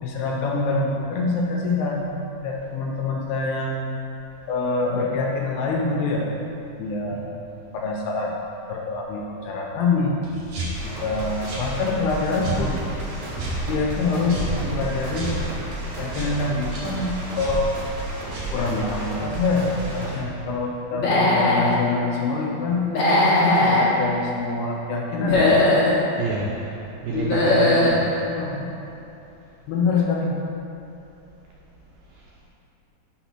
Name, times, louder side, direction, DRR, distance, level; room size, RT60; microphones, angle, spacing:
voice 1, 0.0-2.1 2.4-3.9 4.5-6.3 6.8-7.3 7.7-8.3 8.7-10.2 10.8-12.8 13.7-15.3 16.0-17.7 18.5-22.9 23.4-25.5 28.3-28.7 29.7-30.3, left 3 dB, 80° left, -1 dB, 2.7 m, -25 dB
sound 1, 10.2-19.1, right 2 dB, 75° right, 1.4 m, -33 dB
sound 2, 10.7-20.2, right 1 dB, 50° right, 2.2 m, -33 dB
Human voice / Animal, 20.9-21.7 22.9-23.9 25.1-26.0 27.1-28.0, left 2 dB, 65° left, 1.9 m, -19 dB
voice 2, 26.2-26.7 27.0-28.1, right 4 dB, 90° right, -4 dB, 2.1 m, -28 dB
6.0 x 4.1 x 5.8 m, 2.8 s
omnidirectional pair, 4.8 m